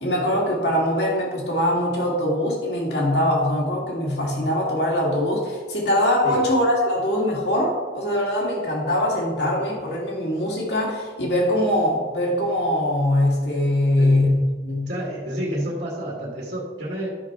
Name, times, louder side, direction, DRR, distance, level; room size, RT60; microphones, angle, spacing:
voice 1, 0.0-14.9, left 1 dB, 65° left, -2 dB, 2.3 m, -22 dB
voice 2, 14.9-17.1, equal, 60° right, -6 dB, 2.1 m, -29 dB
12.0 x 6.0 x 3.7 m, 1.4 s
head